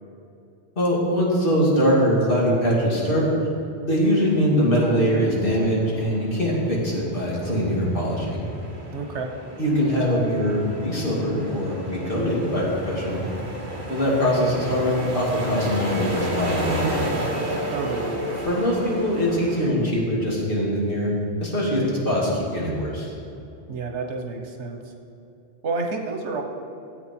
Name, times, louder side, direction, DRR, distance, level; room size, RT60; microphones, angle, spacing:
voice 1, 0.8-3.3 3.8-8.4 9.6-13.2 13.9-17.1 18.5-21.1 21.4-23.1, equal, 50° left, -5 dB, 2.7 m, -22 dB
sound 1, 3.0-6.5 9.9-13.0, right 3 dB, 30° left, 2.3 m, -42 dB
sound 2, 3.9-19.7, right 1 dB, 45° right, 1.7 m, -33 dB
voice 2, 8.9-9.3 17.7-18.2 23.7-24.8 25.6-26.4, right 4 dB, 85° right, 2 dB, 1.4 m, -29 dB
14.0 x 8.0 x 4.5 m, 2.7 s
omnidirectional pair, 1.1 m